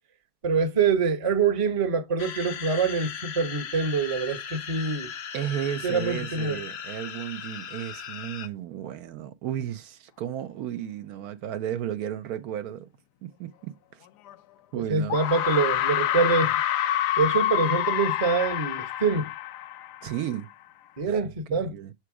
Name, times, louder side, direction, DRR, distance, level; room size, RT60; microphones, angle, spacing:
voice 1, 0.4-5.1 5.8-6.6 14.7-16.6 17.2-19.3 21.0-21.7, right 5 dB, 30° right, 0.6 m, -25 dB
sound 1, 2.2-8.5, left 7 dB, 60° left, 0.7 m, -38 dB
voice 2, 5.3-12.9 13.2-14.1 14.7-15.2 20.0-20.5 21.1-21.2 21.5-21.9, right 10 dB, 75° right, 1.1 m, -34 dB
sound 2, 14.3-14.4 15.1-20.3, left 12 dB, 90° left, 1.2 m, -27 dB
6.9 x 3.2 x 4.7 m
omnidirectional pair, 1.7 m